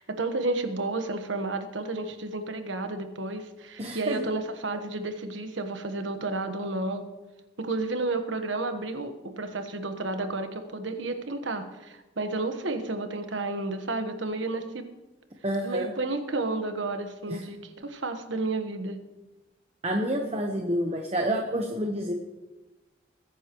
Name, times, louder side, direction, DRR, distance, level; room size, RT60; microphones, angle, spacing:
voice 1, 0.0-7.1 7.6-14.8 15.6-19.0, right 2 dB, 75° right, 7 dB, 1.3 m, -31 dB
voice 2, 3.8-4.2 15.4-15.9 17.3-17.4 19.8-22.1, right 1 dB, 30° right, 2 dB, 1.0 m, -28 dB
21.5 x 10.5 x 3.1 m, 1.1 s
head